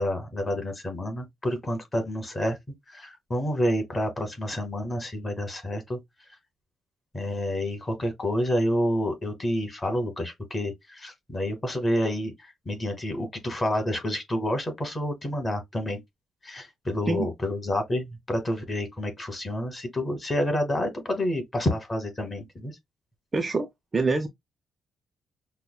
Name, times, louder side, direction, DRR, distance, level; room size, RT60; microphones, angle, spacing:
voice 1, 0.0-2.6 2.9-6.0 7.1-12.3 12.6-16.0 16.4-22.7, left 1 dB, 20° left, 1.2 m, -29 dB
voice 2, 23.3-24.3, right 3 dB, 20° right, 0.4 m, -26 dB
5.6 x 2.1 x 2.2 m
cardioid pair, 160°, 0 cm